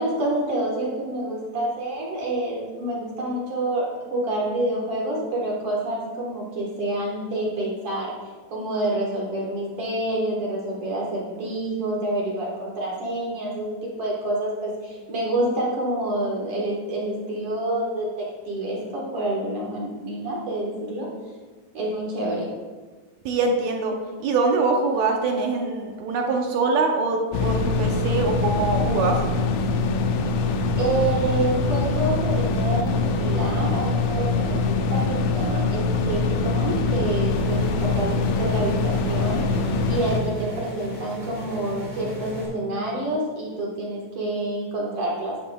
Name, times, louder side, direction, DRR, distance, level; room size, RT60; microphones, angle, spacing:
voice 1, 0.0-8.1 8.5-21.1 21.7-22.5 30.8-45.5, right 1 dB, 55° right, -3 dB, 2.0 m, -28 dB
voice 2, 23.3-23.9 24.2-29.2, right 3 dB, 75° right, 2 dB, 1.9 m, -23 dB
sound 1, 27.3-40.2, left 3 dB, 75° left, 1.8 m, -23 dB
sound 2, 37.3-42.5, equal, 20° left, 1.7 m, -36 dB
10.0 x 9.7 x 2.3 m, 1.4 s
omnidirectional pair, 3.9 m